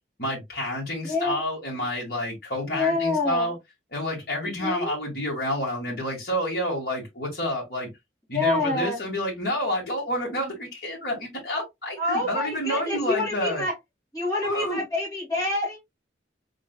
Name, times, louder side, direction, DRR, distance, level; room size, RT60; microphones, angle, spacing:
voice 1, 0.2-3.5 3.9-7.9 8.3-13.6 14.4-14.8, left 1 dB, 55° left, 1.8 m, -29 dB
voice 2, 1.0-1.4 2.7-3.5 4.6-4.9 8.3-9.0 12.0-13.7 14.1-15.8, left 2 dB, 20° left, 2.4 m, -27 dB
4.4 x 3.7 x 2.3 m
head